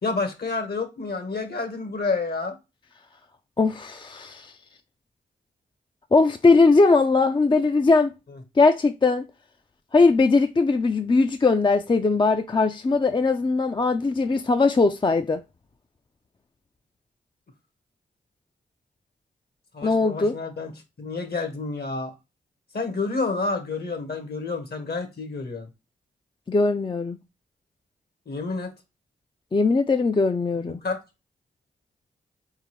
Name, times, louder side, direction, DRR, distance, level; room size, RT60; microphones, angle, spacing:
voice 1, 0.0-2.5 8.3-8.4 19.7-20.7 21.0-22.1 22.7-25.7 28.3-28.7 30.7-31.0, left 3 dB, 55° left, 1.3 m, -29 dB
voice 2, 3.6-4.5 6.1-8.1 8.6-9.3 9.9-15.4 19.8-20.3 26.5-27.2 29.5-30.8, left 3 dB, 25° left, 0.4 m, -20 dB
4.0 x 3.7 x 3.1 m
supercardioid pair, 40°, 20 cm